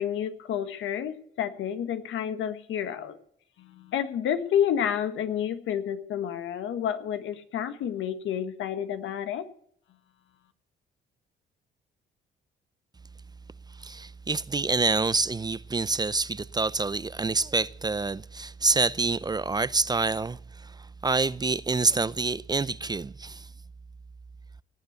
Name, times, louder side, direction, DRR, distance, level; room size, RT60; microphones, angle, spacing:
voice 1, 0.0-3.2 3.6-9.5, left 9 dB, 80° left, 1.5 m, -30 dB
voice 2, 13.8-23.5, right 3 dB, 20° right, 0.5 m, -27 dB
18.0 x 7.9 x 7.9 m
cardioid pair, 90°, 20 cm